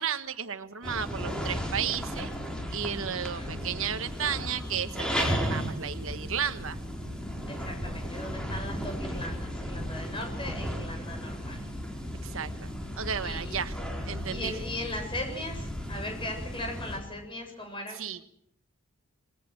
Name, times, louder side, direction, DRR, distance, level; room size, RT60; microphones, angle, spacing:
voice 1, 0.0-2.3 2.7-6.8 12.2-13.8 14.1-14.6 17.9-18.3, right 8 dB, 70° right, 10 dB, 1.3 m, -33 dB
sound 1, 0.8-17.0, equal, 5° left, 4.7 m, -35 dB
voice 2, 3.0-3.5 7.5-11.6 13.2-13.6 14.3-18.0, left 1 dB, 25° left, 4 dB, 7.5 m, -38 dB
27.5 x 20.0 x 6.4 m, 0.69 s
head